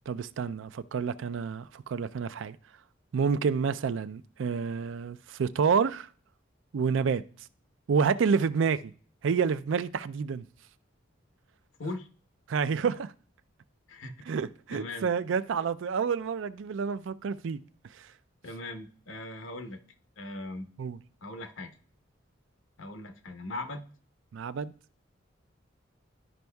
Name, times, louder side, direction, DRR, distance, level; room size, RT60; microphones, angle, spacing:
voice 1, 0.1-2.6 3.1-6.1 6.7-7.2 7.9-8.9 9.2-10.4 12.5-13.1 14.3-17.6 20.8-21.0 24.3-24.7, right 6 dB, 70° right, 0.4 m, -28 dB
voice 2, 14.7-15.1 18.4-19.8 20.2-20.7 21.2-21.7 22.8-23.8, left 2 dB, 80° left, 0.9 m, -39 dB
12.0 x 5.2 x 2.3 m
head